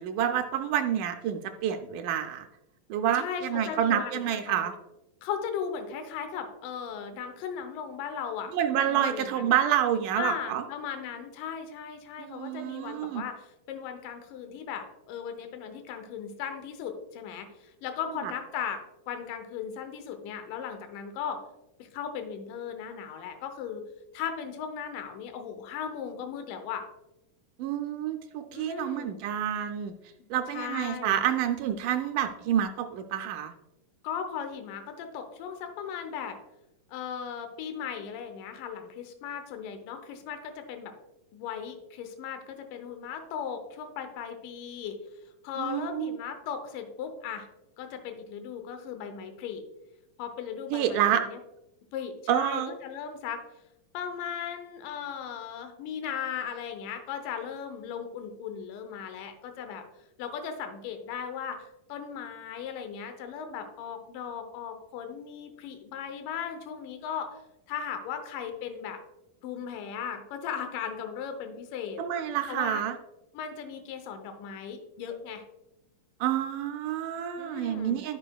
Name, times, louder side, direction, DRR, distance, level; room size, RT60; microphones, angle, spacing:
voice 1, 0.0-2.5 2.9-4.7 8.5-10.6 12.2-13.3 18.2-18.3 27.6-29.9 30.3-33.5 45.6-46.2 50.7-51.2 52.3-52.8 72.0-72.9 76.2-78.2, right 10 dB, 80° right, 5 dB, 1.9 m, -28 dB
voice 2, 3.1-4.7 5.2-8.5 8.9-9.6 10.2-21.4 21.8-23.8 24.1-26.8 28.5-29.2 30.2-31.2 34.0-36.4 36.9-40.9 41.3-45.0 45.4-47.5 47.8-49.6 50.2-51.4 51.9-53.4 53.9-59.8 60.2-67.4 67.7-69.0 69.4-72.0 72.5-72.8 73.3-75.4 77.4-78.0, left 7 dB, 75° left, 7 dB, 2.4 m, -37 dB
12.5 x 5.5 x 2.3 m, 0.91 s
omnidirectional pair, 4.0 m